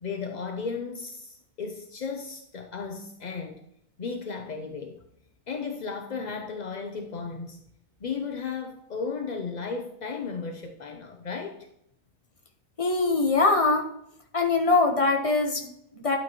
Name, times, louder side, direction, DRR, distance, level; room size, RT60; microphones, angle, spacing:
voice 1, 0.0-3.6 4.0-5.0 5.5-7.6 8.0-11.7, left 5 dB, 45° left, 4 dB, 0.5 m, -35 dB
voice 2, 12.8-13.9 14.3-16.2, left 3 dB, 25° left, 2 dB, 1.1 m, -23 dB
12.0 x 8.9 x 3.0 m, 0.78 s
omnidirectional pair, 1.6 m